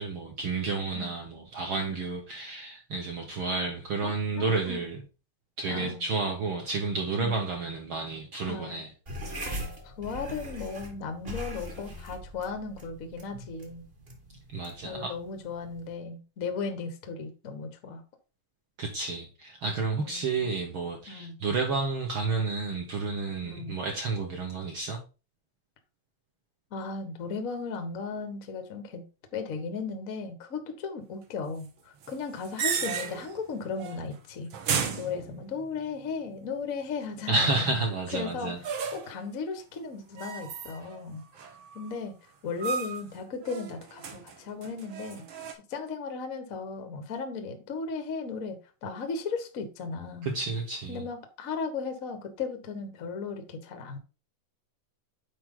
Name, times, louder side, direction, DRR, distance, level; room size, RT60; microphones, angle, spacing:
voice 1, 0.0-5.0 5.6-8.9 14.5-15.1 18.8-25.0 37.3-38.6 50.2-51.0, right 3 dB, 60° right, 1.3 m, -31 dB
voice 2, 4.0-4.8 5.7-6.0 7.2-7.4 8.5-8.8 9.8-13.9 14.8-18.0 19.9-20.5 21.1-21.4 23.4-23.7 26.7-29.0 29.3-34.5 34.9-37.8 38.1-41.2 41.7-42.1 42.4-45.2 45.7-50.3 50.9-54.0, left 4 dB, 80° left, 0.7 m, -36 dB
sound 1, 9.1-15.9, equal, 35° right, 1.0 m, -41 dB
sound 2, 32.0-33.4 33.7-34.1 34.5-35.8 38.6-39.2 40.2-41.0 41.3-42.0 42.6-43.1 43.4-45.5, right 6 dB, 80° right, 1.1 m, -34 dB
7.8 x 4.8 x 3.8 m
omnidirectional pair, 3.7 m